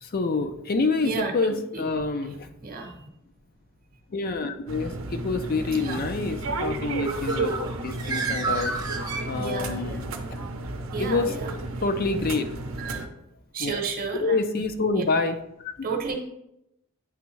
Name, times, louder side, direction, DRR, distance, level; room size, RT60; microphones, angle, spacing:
voice 1, 0.0-2.5 4.1-8.7 9.3-10.4 11.0-11.3 11.8-12.5 13.6-13.8 14.1-15.4 15.6-15.7, left 3 dB, 45° left, 7 dB, 0.4 m, -27 dB
voice 2, 1.0-1.8 2.6-3.1 5.7-6.0 9.3-10.0 10.9-11.6 12.8-13.1 13.5-14.4 14.9-15.0 15.8-16.1, right 4 dB, 45° right, 3 dB, 0.9 m, -32 dB
sound 1, 4.7-13.1, right 2 dB, 70° right, 0.6 m, -32 dB
Bird, 6.8-9.9, right 4 dB, 20° right, 0.6 m, -31 dB
9.1 x 3.5 x 3.1 m, 0.84 s
head